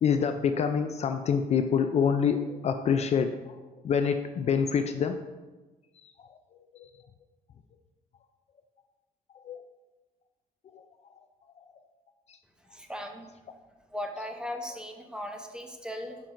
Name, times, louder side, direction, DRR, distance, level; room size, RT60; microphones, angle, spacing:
voice 1, 0.0-3.6 3.8-5.1 6.7-6.9 9.5-9.6, left 6 dB, 45° left, 7 dB, 0.4 m, -26 dB
voice 2, 12.7-13.3 13.9-16.3, left 1 dB, 5° right, 3 dB, 0.6 m, -38 dB
7.1 x 5.9 x 2.5 m, 1.2 s
cardioid pair, 130°, 15 cm